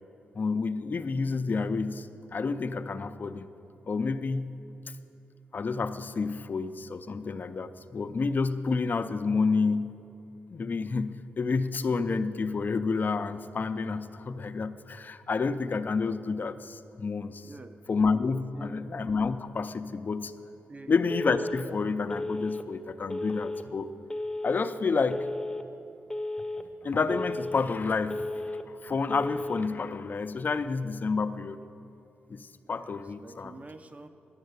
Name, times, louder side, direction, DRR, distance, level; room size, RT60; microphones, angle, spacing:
voice 1, 0.3-2.1 2.3-3.5 3.9-4.5 5.5-10.0 10.5-17.4 17.9-20.3 20.9-23.9 24.4-25.3 26.5-28.2 28.8-31.6 32.3-33.5, left 4 dB, 45° left, 11 dB, 0.6 m, -29 dB
voice 2, 17.4-17.8 18.5-18.9 20.7-20.9 32.6-32.9 33.2-34.1, right 2 dB, 35° right, 9 dB, 0.8 m, -47 dB
Telephone, 21.1-21.6 22.1-22.6 23.1-23.6 24.1-24.6 25.1-25.6 26.1-26.6 27.1-27.6 28.1-28.6 29.1-29.6, left 2 dB, 10° left, 0.8 m, -34 dB
11.0 x 6.6 x 8.1 m, 2.7 s
cardioid pair, 60°, 4 cm